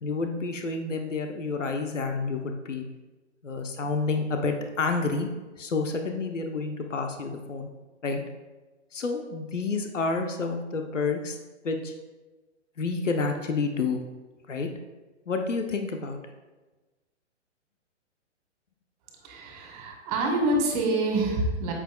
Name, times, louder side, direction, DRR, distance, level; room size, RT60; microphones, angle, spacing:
voice 1, 0.0-2.8 3.4-5.3 5.6-7.7 8.0-8.2 8.9-11.4 11.6-11.9 12.8-14.0 14.5-14.7 15.3-16.2, left 4 dB, 80° left, 4 dB, 0.9 m, -29 dB
voice 2, 19.2-21.7, right 2 dB, 35° right, 1 dB, 1.9 m, -26 dB
8.8 x 7.4 x 2.3 m, 1.2 s
figure-of-eight pair, 125°, 37 cm